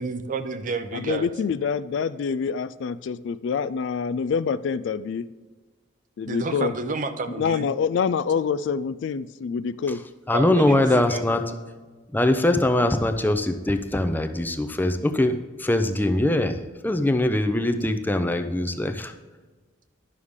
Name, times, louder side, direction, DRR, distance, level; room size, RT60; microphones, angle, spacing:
voice 1, 0.0-1.3 6.3-7.7 10.3-11.2, right 3 dB, 40° right, 9 dB, 0.6 m, -30 dB
voice 2, 0.9-5.3 6.2-6.7 7.3-10.0, left 6 dB, 65° left, 14 dB, 0.3 m, -26 dB
voice 3, 10.3-11.4 12.1-16.6 16.8-19.1, left 1 dB, 10° left, 7 dB, 0.5 m, -22 dB
11.5 x 6.4 x 3.6 m, 1.3 s
head